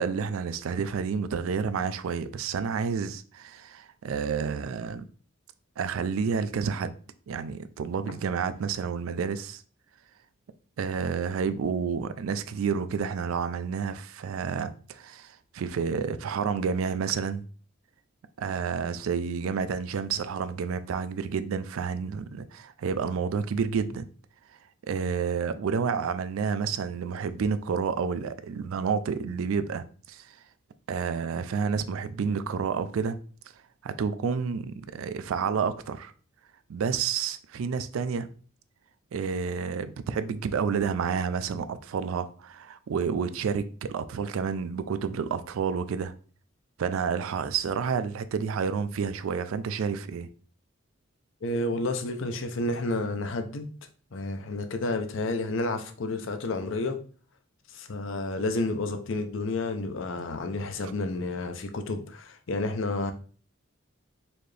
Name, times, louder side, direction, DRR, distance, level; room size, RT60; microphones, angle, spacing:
voice 1, 0.0-5.0 5.8-7.0 7.3-9.6 10.8-17.4 18.4-24.0 24.8-30.4 30.9-33.2 33.8-36.1 36.7-38.3 39.1-46.1 46.8-50.3 60.8-60.9, right 6 dB, 85° right, 0.4 m, -30 dB
voice 2, 51.4-53.7 54.1-57.0 57.7-63.1, left 2 dB, 65° left, 0.5 m, -30 dB
4.2 x 2.8 x 3.2 m
head